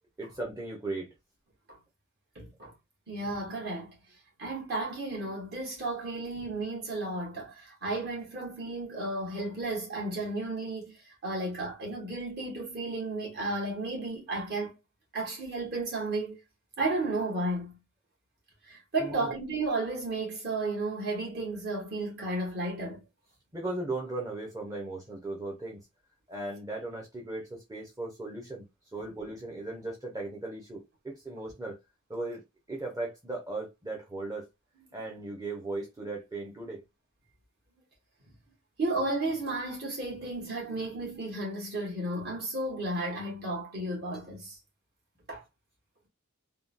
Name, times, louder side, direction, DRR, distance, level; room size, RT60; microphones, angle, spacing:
voice 1, 0.2-1.1 19.0-19.3 23.5-25.9 26.3-28.6 28.9-31.8 32.1-32.4 32.7-34.5 34.9-36.8, right 2 dB, 15° right, 0.7 m, -37 dB
voice 2, 2.3-2.7 3.1-3.9 4.4-11.0 11.2-14.7 15.1-16.4 16.8-17.8 18.7-23.0 38.8-44.6 45.3-45.4, right 2 dB, 50° right, 1.6 m, -33 dB
3.6 x 2.2 x 2.5 m
head